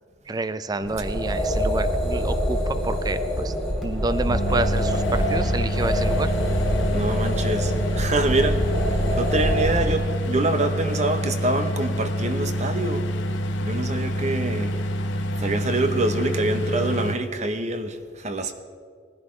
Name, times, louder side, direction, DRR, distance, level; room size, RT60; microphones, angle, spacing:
voice 1, 0.3-3.5 3.8-6.3, right 3 dB, 20° right, 13 dB, 0.4 m, -28 dB
sound 1, 0.8-9.9, equal, ahead, 2.4 m, -25 dB
sound 2, 4.3-17.1, equal, 75° left, 0.9 m, -27 dB
voice 2, 6.9-13.1 13.6-14.7 15.4-18.5, right 2 dB, 35° right, 9 dB, 0.8 m, -25 dB
19.5 x 11.0 x 3.2 m, 2.1 s
head